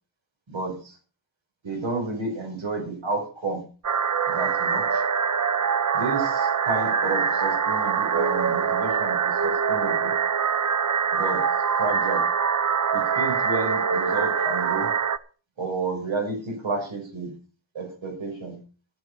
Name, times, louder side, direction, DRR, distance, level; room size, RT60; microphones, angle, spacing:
voice 1, 0.5-1.0 1.6-3.6 4.3-5.0 5.9-10.2 11.1-11.5 11.8-12.3 12.9-14.9 15.6-17.4 17.7-18.6, right 3 dB, 85° right, 3 dB, 5.8 m, -31 dB
sound 1, 3.8-15.2, right 6 dB, 40° right, 0.8 m, -24 dB
13.0 x 8.3 x 6.9 m, 0.38 s
wide cardioid pair, 130°, 45 cm